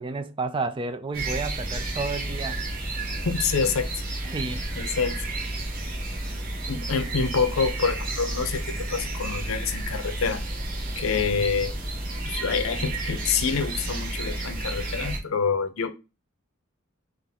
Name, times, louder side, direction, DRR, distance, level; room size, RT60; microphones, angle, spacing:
voice 1, 0.0-2.6 4.2-4.6, right 3 dB, 25° right, 0.4 m, -31 dB
sound 1, 1.1-15.2, right 2 dB, 45° right, 1.2 m, -31 dB
voice 2, 3.2-3.9 4.8-5.2 6.7-10.4 11.0-11.8 12.3-15.9, left 5 dB, 80° left, 0.6 m, -27 dB
4.1 x 2.5 x 3.5 m
head